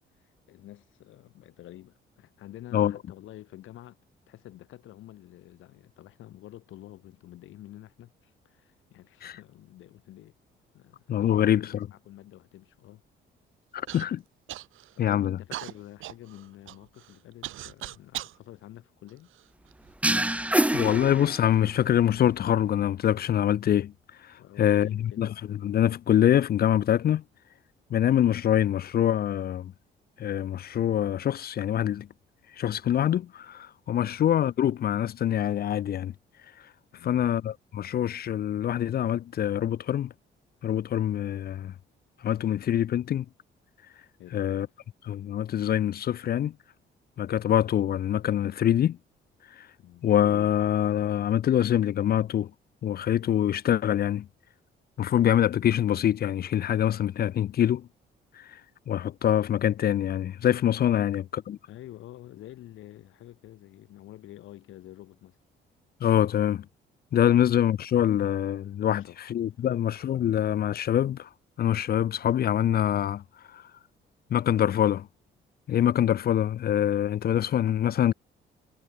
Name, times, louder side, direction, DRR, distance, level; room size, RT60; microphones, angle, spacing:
voice 1, 0.5-4.0 4.3-10.3 10.7-13.0 15.0-19.3 24.4-25.2 34.0-34.2 36.9-37.3 44.2-44.6 49.8-50.1 61.7-65.4 68.9-69.2 69.6-69.8, left 14 dB, 85° left, 5.7 m, -48 dB
voice 2, 11.1-11.9 13.7-14.2 15.0-15.4 20.7-23.9 24.6-27.2 27.9-29.7 30.2-32.1 32.6-36.1 37.0-40.1 40.6-41.7 42.2-43.3 44.3-44.7 45.0-46.5 47.2-49.0 50.0-52.5 52.8-54.3 55.0-57.9 58.5-58.6 58.9-61.6 66.0-66.6 67.1-71.3 71.6-73.2 73.5-73.6 74.3-75.1 75.7-78.1, left 10 dB, 50° left, 0.5 m, -25 dB
Human voice / Cough, 13.9-14.1 14.5-15.0 15.5-18.4 19.1-19.9 20.7-20.8 21.5-21.8, right 14 dB, 85° right, 3.9 m, -40 dB
sound 1, 20.0-21.8, right 1 dB, 5° right, 1.7 m, -26 dB
cardioid pair, 90°, 20 cm